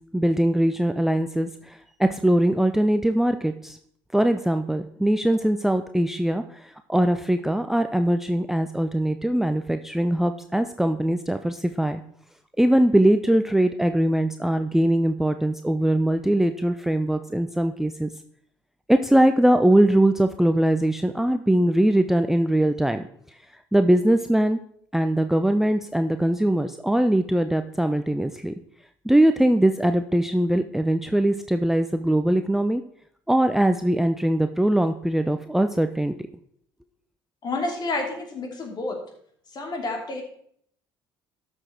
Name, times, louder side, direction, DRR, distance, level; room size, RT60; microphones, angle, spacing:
voice 1, 0.1-3.8 4.1-12.0 12.6-18.1 18.9-23.1 23.7-24.6 24.9-28.5 29.0-32.8 33.3-36.2, right 1 dB, 5° right, 8 dB, 0.6 m, -21 dB
voice 2, 37.4-39.0 39.5-40.2, left 2 dB, 40° left, 2 dB, 3.0 m, -29 dB
12.5 x 6.3 x 4.4 m, 0.66 s
figure-of-eight pair, 55°, 11 cm